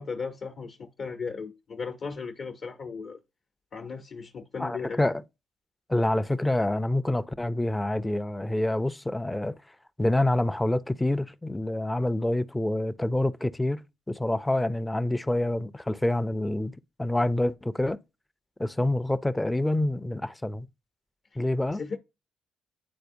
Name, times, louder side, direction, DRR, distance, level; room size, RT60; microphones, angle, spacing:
voice 1, 0.0-3.2 3.7-5.0 21.3-21.4 21.7-22.0, left 5 dB, 50° left, 0.8 m, -36 dB
voice 2, 4.6-5.2 5.9-9.5 10.0-16.7 17.0-18.0 18.6-20.7 21.4-21.8, left 1 dB, 10° left, 0.5 m, -27 dB
9.4 x 4.1 x 2.7 m
cardioid pair, 90°, 0 cm